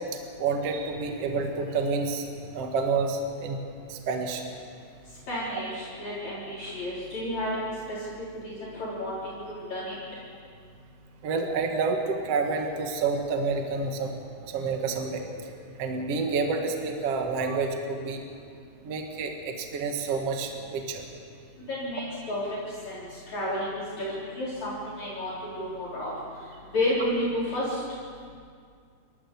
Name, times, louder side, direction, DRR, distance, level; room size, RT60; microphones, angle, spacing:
voice 1, 0.4-2.3 2.5-3.6 3.9-4.4 11.2-14.1 14.5-15.3 15.8-18.2 18.8-21.0, right 4 dB, 50° right, 3 dB, 2.3 m, -28 dB
voice 2, 5.3-8.1 8.4-10.0 21.6-27.8, left 1 dB, 50° left, -8 dB, 5.3 m, -32 dB
29.5 x 14.0 x 7.1 m, 2.2 s
omnidirectional pair, 4.2 m